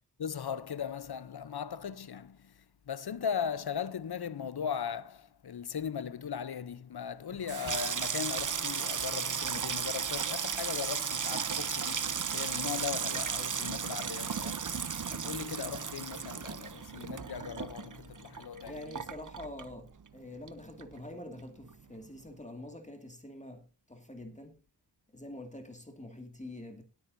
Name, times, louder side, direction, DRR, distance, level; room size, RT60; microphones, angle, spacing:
voice 1, 0.2-14.7 15.1-19.0, left 7 dB, 60° left, 0.8 m, -38 dB
Water tap faucet / Sink (filling or washing), 7.3-20.2 20.5-21.1 21.4-21.7, right 6 dB, 45° right, 0.8 m, -35 dB
voice 2, 18.7-24.6 25.1-26.8, left 1 dB, 15° left, 2.1 m, -46 dB
20.5 x 8.6 x 2.7 m
cardioid pair, 55°, 43 cm